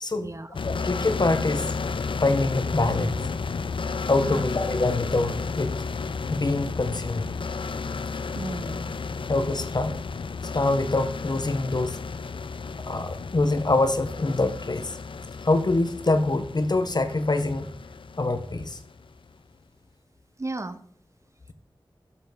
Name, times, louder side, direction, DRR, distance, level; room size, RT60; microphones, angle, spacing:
voice 1, 0.1-0.5 4.3-4.5 8.3-8.9 20.4-20.8, right 2 dB, 35° right, 11 dB, 0.7 m, -34 dB
sound 1, 0.5-19.2, left 4 dB, 70° left, 0.4 m, -33 dB
voice 2, 0.6-1.7 2.2-3.2 4.1-5.7 6.3-7.3 9.3-10.0 10.5-12.0 12.9-15.0 15.4-17.7 18.2-18.8, left 2 dB, 50° left, 9 dB, 0.8 m, -25 dB
7.0 x 7.0 x 4.0 m, 0.62 s
wide cardioid pair, 45°, 9 cm